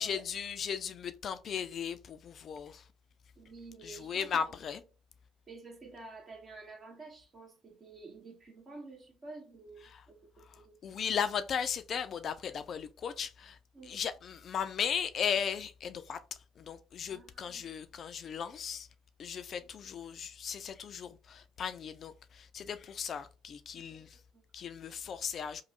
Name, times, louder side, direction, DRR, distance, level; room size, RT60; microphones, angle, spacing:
voice 1, 0.0-2.9 3.8-4.8 9.9-10.0 10.8-16.2 16.6-18.9 19.2-24.2 24.5-25.6, left 7 dB, 50° left, 0.3 m, -36 dB
voice 2, 3.3-4.4 5.5-11.0 13.7-14.0 17.1-17.6 19.6-19.7 23.7-24.0 24.3-24.4, right 3 dB, 40° right, 1.5 m, -50 dB
3.0 x 2.0 x 3.0 m
hypercardioid pair, 55°, 0 cm